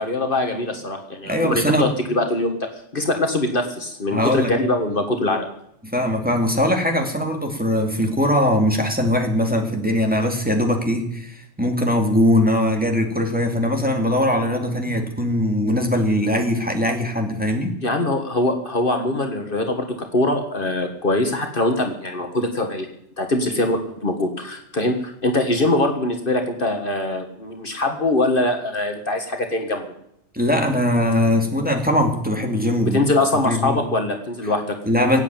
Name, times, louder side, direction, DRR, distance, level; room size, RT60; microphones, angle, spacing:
voice 1, 0.0-2.6 2.9-5.5 14.9-15.0 17.8-19.9 20.1-22.9 23.2-29.8 32.8-34.7, left 2 dB, 50° left, 4 dB, 1.7 m, -22 dB
voice 2, 1.3-1.9 4.1-4.5 5.8-17.7 30.3-33.1 33.4-33.8 34.8-35.2, left 1 dB, 5° right, 2 dB, 2.3 m, -21 dB
18.0 x 8.4 x 9.0 m, 0.75 s
omnidirectional pair, 1.2 m